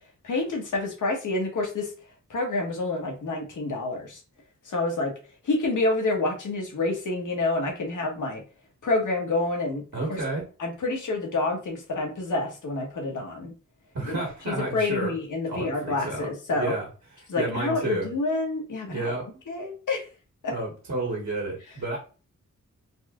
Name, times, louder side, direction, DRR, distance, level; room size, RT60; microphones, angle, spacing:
voice 1, 0.2-1.9 2.3-4.2 4.7-5.1 5.4-8.4 8.8-9.8 10.1-10.2 10.6-13.5 14.0-16.7 17.3-19.1 19.5-20.0 20.4-20.5, left 2 dB, 80° left, 1 dB, 1.1 m, -28 dB
voice 2, 9.9-10.4 13.9-15.1 15.5-16.9 17.3-18.1 18.9-19.4 20.5-22.0, right 2 dB, 60° right, -2 dB, 1.4 m, -31 dB
4.1 x 2.7 x 2.3 m, 0.35 s
wide cardioid pair, 130°, 30 cm